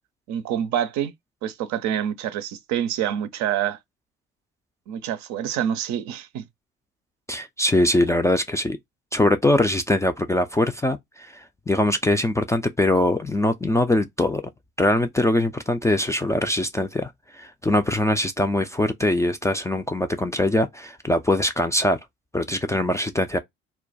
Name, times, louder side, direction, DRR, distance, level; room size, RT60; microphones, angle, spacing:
voice 1, 0.3-1.1 1.4-3.8 4.9-6.5, right 10 dB, 60° right, 0.5 m, -26 dB
voice 2, 7.3-8.8 9.1-14.4 14.8-22.0 22.3-23.4, left 1 dB, 10° left, 0.3 m, -22 dB
2.3 x 2.2 x 3.9 m
hypercardioid pair, 50°, 31 cm